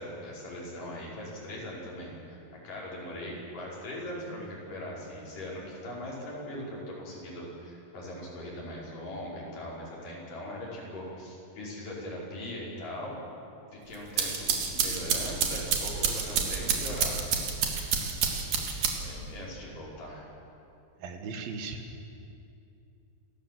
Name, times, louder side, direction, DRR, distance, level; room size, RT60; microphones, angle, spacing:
voice 1, 0.0-13.2 13.7-17.3 19.0-20.2, left 1 dB, 65° left, -5 dB, 6.6 m, -40 dB
sound 1, 13.9-19.3, right 6 dB, 65° right, 3.3 m, -29 dB
voice 2, 21.0-22.0, right 4 dB, 85° right, 5 dB, 3.5 m, -38 dB
28.0 x 14.0 x 7.6 m, 2.7 s
omnidirectional pair, 4.1 m